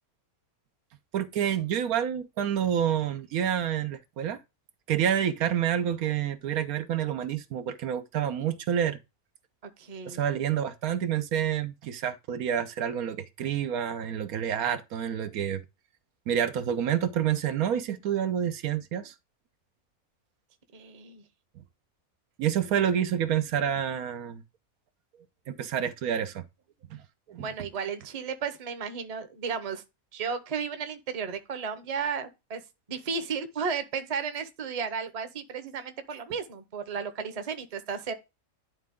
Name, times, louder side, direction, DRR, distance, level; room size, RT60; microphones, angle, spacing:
voice 1, 1.1-4.4 4.9-9.0 10.0-15.6 16.3-19.1 22.4-24.4 25.5-26.4 26.9-27.0 27.3-27.5, right 9 dB, 85° right, 1.2 m, -28 dB
voice 2, 9.6-10.2 20.7-21.2 27.4-29.8 30.1-32.6 32.9-38.1, right 6 dB, 35° right, 0.7 m, -34 dB
11.0 x 3.8 x 3.6 m
omnidirectional pair, 1.5 m